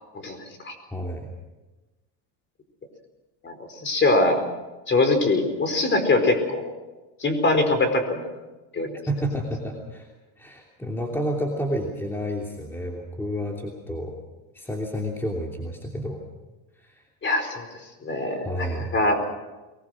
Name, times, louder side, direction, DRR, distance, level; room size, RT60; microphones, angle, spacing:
voice 1, 0.2-0.8 3.4-3.6 3.8-4.4 4.9-6.7 7.2-8.3 8.7-9.0 17.2-18.7 18.9-19.2, left 2 dB, 25° left, 6 dB, 4.8 m, -23 dB
voice 2, 0.9-1.3 8.9-10.1 10.4-14.1 14.5-16.2 16.8-17.0 18.4-18.9, equal, 5° left, 0 dB, 2.9 m, -30 dB
23.5 x 20.0 x 6.4 m, 1.1 s
supercardioid pair, 125°, 43 cm